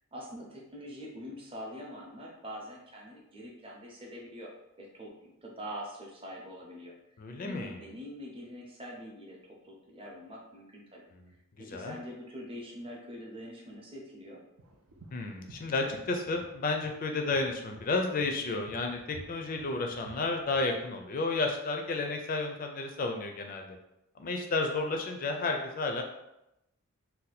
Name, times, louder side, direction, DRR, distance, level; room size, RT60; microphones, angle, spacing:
voice 1, 0.1-4.5 4.8-6.9 7.4-9.4 9.6-11.0 11.3-14.4, equal, 25° right, -2 dB, 0.6 m, -44 dB
voice 2, 7.2-7.8 11.7-12.0 15.1-23.8 24.2-26.0, left 3 dB, 40° left, 4 dB, 0.4 m, -32 dB
sound 1, 14.6-20.7, right 1 dB, 70° right, 0.5 m, -52 dB
2.7 x 2.2 x 4.1 m, 0.88 s
head